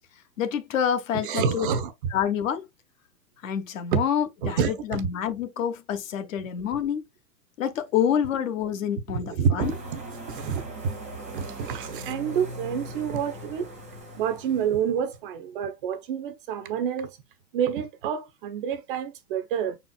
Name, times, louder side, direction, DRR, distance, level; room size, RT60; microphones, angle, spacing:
voice 1, 0.4-1.7 2.1-2.6 3.4-7.0 7.6-9.7, left 8 dB, 50° left, 1.0 m, -27 dB
voice 2, 1.1-1.9 3.9-4.0 4.4-5.0 9.1-10.0 10.3-10.9 11.3-13.7 14.2-17.2 17.5-19.8, right 7 dB, 35° right, 0.7 m, -28 dB
sound 1, 9.6-15.1, right 1 dB, ahead, 0.3 m, -40 dB
5.4 x 4.3 x 2.2 m
hypercardioid pair, 120°, 49 cm